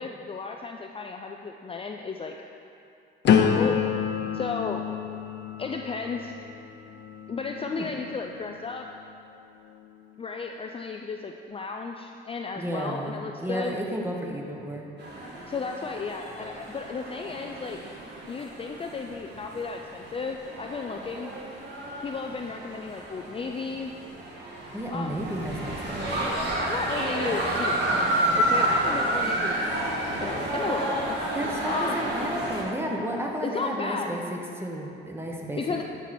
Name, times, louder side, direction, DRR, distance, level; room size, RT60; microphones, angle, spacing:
voice 1, 0.0-2.3 3.3-3.8 4.3-4.8 5.6-6.3 7.3-8.9 10.2-13.7 15.5-17.8 18.3-21.3 22.0-23.9 24.9-25.2 26.6-28.1 28.4-29.8 30.2-31.4 31.6-32.0 33.4-34.1 35.6-35.8, left 4 dB, 30° left, 2 dB, 0.4 m, -34 dB
sound 1, 3.3-9.1 9.7-10.1, left 7 dB, 65° left, 0.7 m, -28 dB
voice 2, 12.6-14.9 24.7-26.1 31.3-35.8, right 1 dB, 10° right, 0 dB, 1.1 m, -32 dB
sound 2, 15.0-32.6, right 1 dB, 60° right, 1.8 m, -30 dB
11.0 x 4.6 x 4.3 m, 2.6 s
cardioid pair, 90°, 20 cm